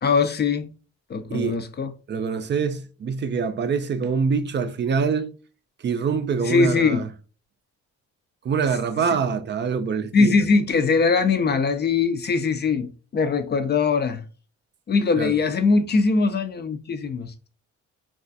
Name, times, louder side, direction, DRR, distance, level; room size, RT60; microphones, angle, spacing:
voice 1, 0.0-0.7 1.1-1.9 6.4-7.1 10.1-14.2 14.9-17.5, left 4 dB, 35° left, 0.4 m, -21 dB
voice 2, 2.1-5.3 5.8-7.1 8.4-10.4 15.2-15.3, right 5 dB, 40° right, 0.4 m, -25 dB
3.1 x 2.4 x 2.5 m
cardioid pair, 90°, 30 cm